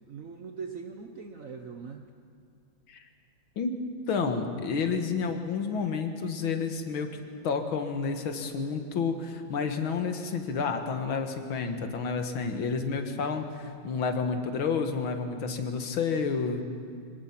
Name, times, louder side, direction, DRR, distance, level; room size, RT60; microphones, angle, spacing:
voice 1, 0.1-2.1, right 5 dB, 50° right, 5 dB, 1.1 m, -41 dB
voice 2, 4.1-16.6, left 5 dB, 85° left, 6 dB, 2.2 m, -30 dB
24.0 x 18.5 x 5.9 m, 2.3 s
omnidirectional pair, 2.2 m